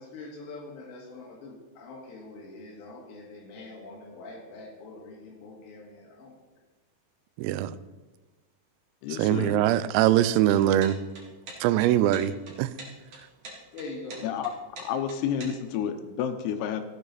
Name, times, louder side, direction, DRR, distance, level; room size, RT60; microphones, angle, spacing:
voice 1, 0.0-6.4 13.7-14.3, left 2 dB, 65° left, 1 dB, 3.6 m, -43 dB
voice 2, 7.4-7.8 9.2-11.0 11.6-12.7, right 12 dB, 90° right, 15 dB, 3.3 m, -22 dB
voice 3, 9.0-9.6 14.2-14.5 14.8-16.9, left 8 dB, 85° left, 8 dB, 3.6 m, -30 dB
sound 1, 10.4-15.7, right 2 dB, 40° right, 2.4 m, -44 dB
15.5 x 9.3 x 4.1 m, 1.2 s
omnidirectional pair, 6.0 m